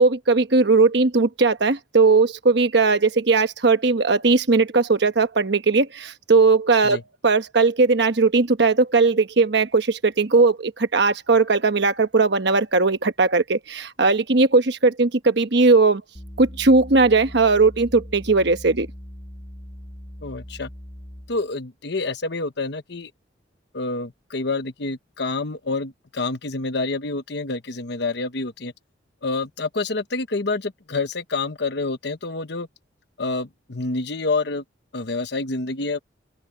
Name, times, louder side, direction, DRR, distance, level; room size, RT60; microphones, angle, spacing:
voice 1, 0.0-16.0 16.4-18.9, right 3 dB, 60° right, 1.1 m, -18 dB
sound 1, 16.1-21.4, equal, 25° left, 1.8 m, -40 dB
voice 2, 20.2-20.7 21.3-23.1 23.7-28.7 29.2-32.7 33.2-34.6 34.9-36.0, left 3 dB, 60° left, 1.1 m, -27 dB
open air
head